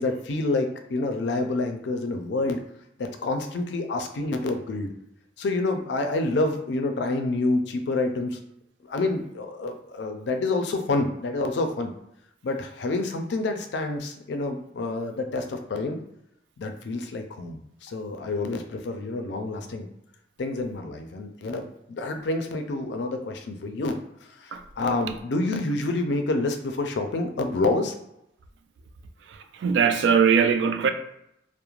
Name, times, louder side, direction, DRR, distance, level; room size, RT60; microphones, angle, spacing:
voice 1, 0.0-2.6 3.0-4.9 5.4-8.4 8.9-11.9 12.4-16.0 16.6-19.9 20.4-24.0 24.4-27.9, left 2 dB, 70° left, 0.4 m, -28 dB
voice 2, 29.3-30.9, right 6 dB, 75° right, 0.3 m, -21 dB
2.4 x 2.0 x 3.0 m
head